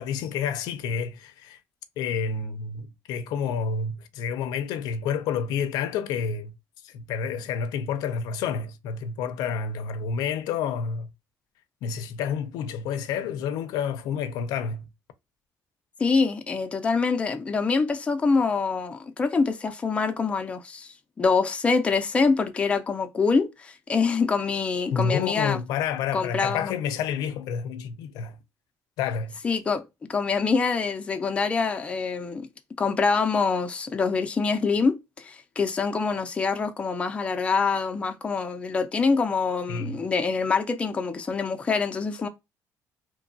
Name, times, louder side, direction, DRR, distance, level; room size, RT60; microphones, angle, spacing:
voice 1, 0.0-1.6 2.0-6.6 6.8-11.1 11.8-14.9 24.9-28.4 29.0-29.4 39.7-40.0, left 6 dB, 85° left, 0.4 m, -29 dB
voice 2, 16.0-25.6 26.1-26.7 29.4-29.8 30.1-32.5 32.8-42.3, left 4 dB, 20° left, 0.4 m, -25 dB
2.9 x 2.2 x 2.6 m
cardioid pair, 145°, 7 cm